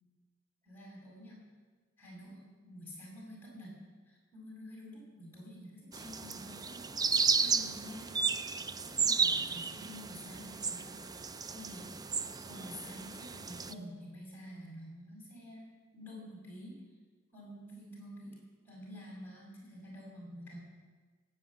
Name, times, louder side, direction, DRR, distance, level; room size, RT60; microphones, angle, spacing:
voice 1, 0.6-1.4 2.0-3.7 4.1-6.8 7.4-8.1 8.8-11.0 11.5-11.9 12.4-16.8 17.3-18.4 18.6-20.6, equal, 10° left, -5 dB, 6.8 m, -49 dB
sound 1, 5.9-13.7, right 5 dB, 20° right, 0.4 m, -33 dB
18.5 x 8.1 x 8.6 m, 1.4 s
head